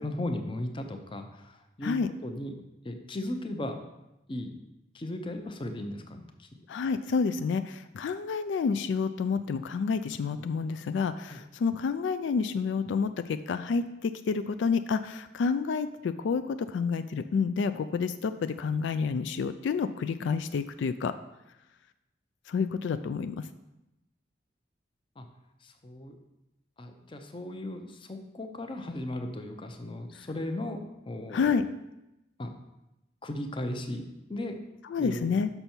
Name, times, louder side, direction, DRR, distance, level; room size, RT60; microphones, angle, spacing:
voice 1, 0.0-2.0 2.2-2.6 2.8-3.8 4.3-4.6 4.9-6.5 11.3-11.4 25.2-25.3 25.6-26.2 26.8-30.8 31.1-31.5 32.4-32.5 33.2-34.0 34.3-34.6 35.0-35.4, left 1 dB, 25° left, 6 dB, 0.6 m, -36 dB
voice 2, 6.7-21.1 22.5-23.5 31.3-31.6 34.9-35.5, left 5 dB, 80° left, 11 dB, 0.3 m, -29 dB
6.8 x 5.6 x 4.4 m, 0.93 s
head